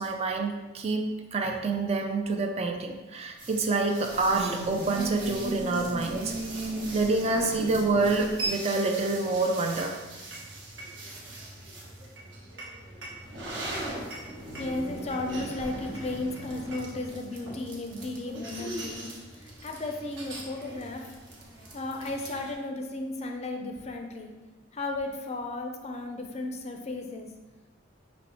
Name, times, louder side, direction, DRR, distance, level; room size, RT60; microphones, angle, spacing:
voice 1, 0.0-10.0, right 3 dB, 35° right, 3 dB, 0.4 m, -27 dB
sound 1, 3.4-22.5, right 2 dB, 65° right, 1.0 m, -38 dB
voice 2, 14.6-21.1 21.7-24.3 24.7-27.3, left 2 dB, 35° left, 3 dB, 0.4 m, -34 dB
5.4 x 3.0 x 2.9 m, 1.2 s
head